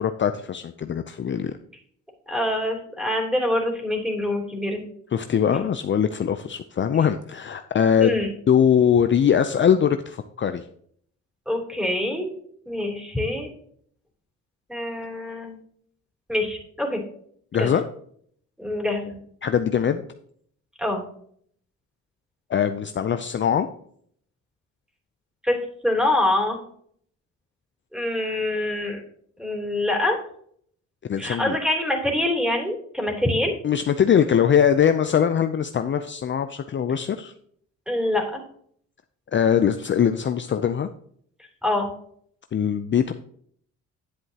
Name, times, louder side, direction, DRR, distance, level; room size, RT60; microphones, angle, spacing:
voice 1, 0.0-1.5 5.1-8.2 8.5-10.6 17.5-17.8 19.4-20.0 22.5-23.7 31.1-31.6 33.6-37.3 39.3-40.9 42.5-43.1, left 8 dB, 40° left, 9 dB, 0.5 m, -21 dB
voice 2, 2.3-4.9 5.4-5.5 8.0-8.3 11.5-12.3 12.7-13.5 14.7-15.6 16.3-17.0 17.6-17.7 18.6-19.2 20.8-21.0 25.4-25.6 25.8-26.6 27.9-29.0 29.4-30.2 31.2-33.5 37.9-38.4 41.6-41.9, left 1 dB, 5° right, -1 dB, 3.3 m, -25 dB
10.0 x 7.7 x 2.9 m, 0.63 s
cardioid pair, 80°, 30 cm